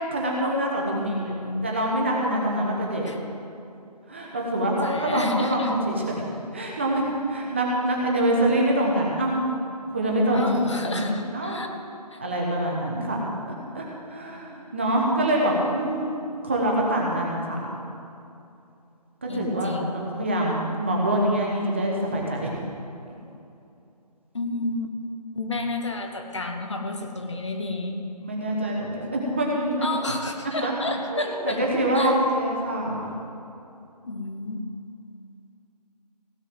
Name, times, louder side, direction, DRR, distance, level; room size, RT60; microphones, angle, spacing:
voice 1, 0.1-1.3 1.6-3.1 4.1-6.2 6.5-9.4 9.9-11.0 11.3-11.6 12.2-13.2 13.7-17.7 19.2-22.5 28.2-29.9 30.6-33.1, right 1 dB, 15° right, -2 dB, 1.1 m, -25 dB
voice 2, 0.9-1.7 3.0-3.2 4.7-5.7 10.3-11.7 12.1-12.2 14.2-14.4 19.3-20.0 24.3-25.0 25.3-28.0 28.8-28.9 29.8-31.6 31.9-32.1 34.1-34.7, left 2 dB, 45° left, 5 dB, 1.1 m, -31 dB
16.0 x 5.6 x 8.9 m, 2.6 s
hypercardioid pair, 175°, 21 cm